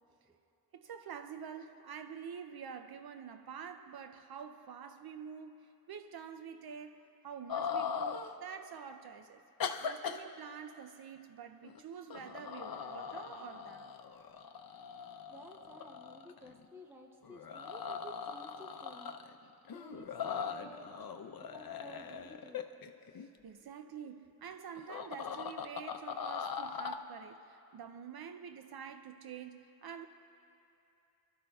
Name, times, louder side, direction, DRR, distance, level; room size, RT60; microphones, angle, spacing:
voice 1, 0.7-9.4 9.8-13.9 23.2-30.1, right 7 dB, 75° right, 0.5 m, -47 dB
sound 1, 7.5-8.3 9.6-10.2 11.6-11.8 12.1-16.6 17.2-19.4 19.7-23.3 24.8-27.0, left 7 dB, 70° left, 0.6 m, -40 dB
voice 2, 15.3-19.1 19.4-20.9 21.4-22.6, right 1 dB, 5° right, 0.6 m, -54 dB
26.0 x 12.5 x 2.3 m
wide cardioid pair, 120°, 37 cm